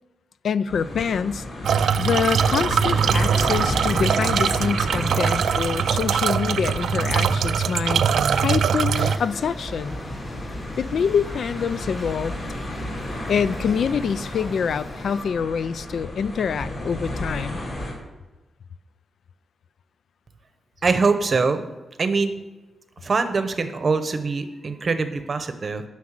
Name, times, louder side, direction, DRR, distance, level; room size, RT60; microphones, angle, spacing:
voice 1, 0.4-8.0 8.3-10.0 10.8-12.4 13.3-17.6, left 6 dB, 60° left, 15 dB, 0.3 m, -25 dB
sound 1, 0.7-17.9, left 1 dB, 40° left, 2.9 m, -33 dB
sound 2, 1.6-9.2, right 7 dB, 80° right, 0.4 m, -22 dB
sound 3, 8.9-15.2, left 1 dB, 20° left, 2.6 m, -42 dB
voice 2, 20.8-21.7 22.0-22.4 23.0-25.8, right 4 dB, 35° right, 9 dB, 0.8 m, -23 dB
9.7 x 6.0 x 7.5 m, 1.1 s
wide cardioid pair, 170°, 0 cm